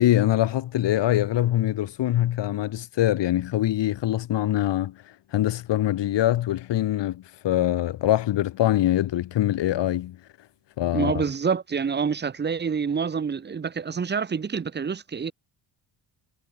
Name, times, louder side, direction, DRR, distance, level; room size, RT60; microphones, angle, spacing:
voice 1, 0.0-4.9 5.3-10.2 10.8-11.2, left 13 dB, 75° left, 1.6 m, -23 dB
voice 2, 10.9-15.3, right 6 dB, 25° right, 0.8 m, -27 dB
cardioid pair, 135°, 44 cm